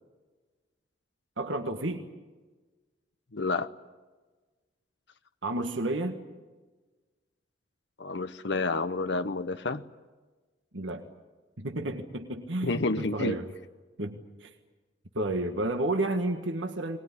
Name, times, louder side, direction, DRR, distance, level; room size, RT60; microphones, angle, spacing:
voice 1, 1.4-2.1 5.4-6.2 10.7-11.0 11.6-13.5 14.0-14.5 15.1-17.0, right 2 dB, 85° right, 5 dB, 1.7 m, -31 dB
voice 2, 3.3-3.7 8.0-9.8 12.6-13.4, left 3 dB, 65° left, 11 dB, 0.9 m, -29 dB
22.0 x 20.0 x 10.0 m, 1.3 s
head